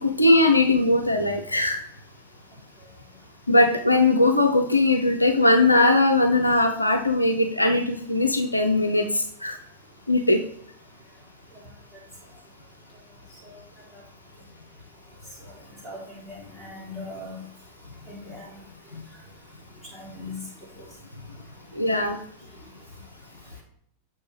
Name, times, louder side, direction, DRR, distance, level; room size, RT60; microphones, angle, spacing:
voice 1, 0.0-1.8 3.5-9.6 10.1-10.4 18.9-19.0 21.7-22.2, left 2 dB, 85° left, 5 dB, 0.5 m, -20 dB
voice 2, 16.3-17.3 18.1-18.5 20.0-20.3, left 2 dB, 5° left, -4 dB, 2.8 m, -39 dB
6.7 x 5.3 x 3.2 m, 0.64 s
figure-of-eight pair, 90°, 0 cm